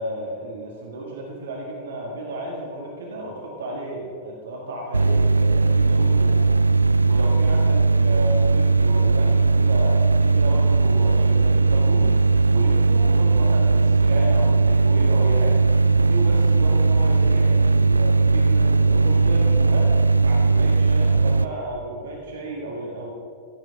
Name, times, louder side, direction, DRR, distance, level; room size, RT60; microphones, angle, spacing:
voice 1, 0.0-6.4 7.0-12.2 12.5-15.6 15.9-19.9 20.2-23.1, right 1 dB, 65° right, -2 dB, 1.8 m, -33 dB
sound 1, 4.9-21.5, right 3 dB, 80° right, 0.3 m, -18 dB
15.0 x 7.5 x 6.3 m, 2.3 s
figure-of-eight pair, 90°, 0 cm